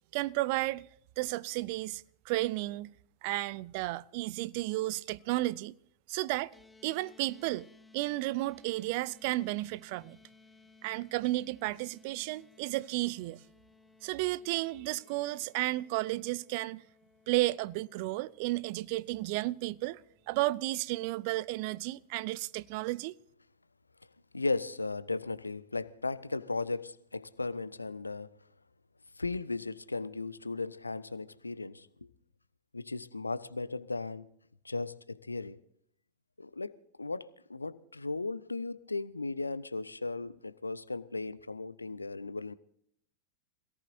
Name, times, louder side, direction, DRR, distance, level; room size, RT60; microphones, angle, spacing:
voice 1, 0.1-0.9 1.2-2.9 3.2-5.7 6.1-6.5 6.8-7.7 7.9-10.2 10.8-13.4 14.0-16.8 17.3-20.0 20.3-23.1, right 19 dB, 45° right, 0.5 m, -33 dB
sound 1, 6.5-20.9, left 3 dB, 10° left, 1.0 m, -61 dB
voice 2, 24.3-28.3 29.2-31.9 32.7-34.3 34.6-35.6 36.4-42.5, left 3 dB, 80° left, 0.7 m, -36 dB
27.0 x 17.5 x 2.6 m
figure-of-eight pair, 90°, 0 cm